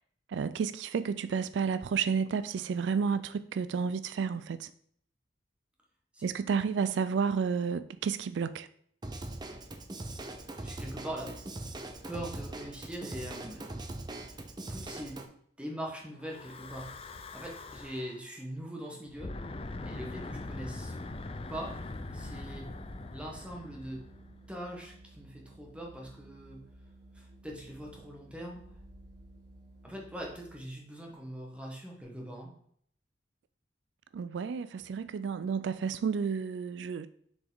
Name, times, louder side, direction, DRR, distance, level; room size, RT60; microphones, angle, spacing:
voice 1, 0.3-4.7 6.2-8.7 34.1-37.1, right 6 dB, 85° right, 0.3 m, -31 dB
Drum kit / Drum, 9.0-15.3, right 2 dB, 25° right, 0.6 m, -41 dB
voice 2, 10.6-11.3 12.0-13.8 14.7-15.2 15.6-16.9 17.3-19.3 19.8-21.0 21.5-21.8 22.1-22.7 23.1-24.0 24.5-26.6 27.1-28.6 29.8-32.5, right 1 dB, 5° right, 1.4 m, -42 dB
Breathing / Wind, 16.2-18.2 19.1-24.5, left 2 dB, 30° left, 0.5 m, -42 dB
Organ, 20.5-30.8, right 1 dB, 60° right, 2.1 m, -55 dB
6.8 x 5.0 x 3.9 m
head